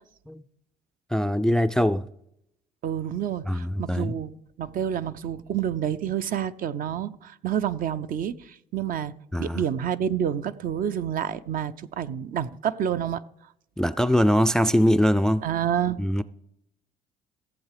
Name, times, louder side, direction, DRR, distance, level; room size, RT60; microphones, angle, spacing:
voice 1, 1.1-2.1 3.5-4.2 9.3-9.6 13.8-15.4 16.0-16.2, equal, 5° left, 0.3 m, -22 dB
voice 2, 2.8-13.2 15.4-16.2, right 9 dB, 55° right, 0.6 m, -29 dB
15.5 x 7.4 x 4.9 m
cardioid pair, 110°, 17 cm